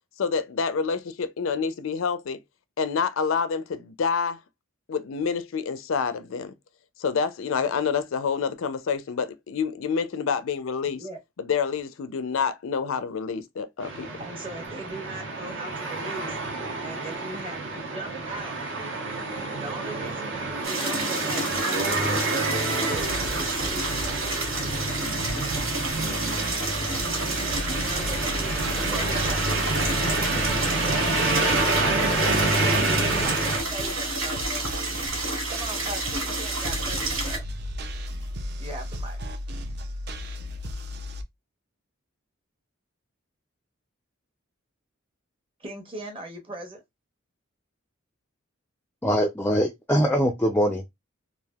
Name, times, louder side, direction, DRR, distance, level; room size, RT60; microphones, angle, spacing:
voice 1, 0.2-2.4 2.8-4.4 4.9-6.5 7.0-11.0 11.4-14.1, left 6 dB, 80° left, 0.4 m, -27 dB
sound 1, 13.8-33.6, right 2 dB, 70° right, 1.1 m, -28 dB
voice 2, 14.2-16.4 16.8-18.6 19.6-24.1 27.7-28.5 28.8-29.4 29.7-30.3 32.9-35.1 35.5-37.4 38.6-39.2 45.6-46.8, right 2 dB, 25° right, 0.9 m, -39 dB
water with way more burble, 20.6-37.4, right 2 dB, 85° right, 1.7 m, -30 dB
Welcome to the basment (bassline), 22.9-41.2, equal, 55° right, 0.5 m, -35 dB
voice 3, 49.0-51.0, equal, 10° left, 0.3 m, -23 dB
3.3 x 2.5 x 2.3 m
head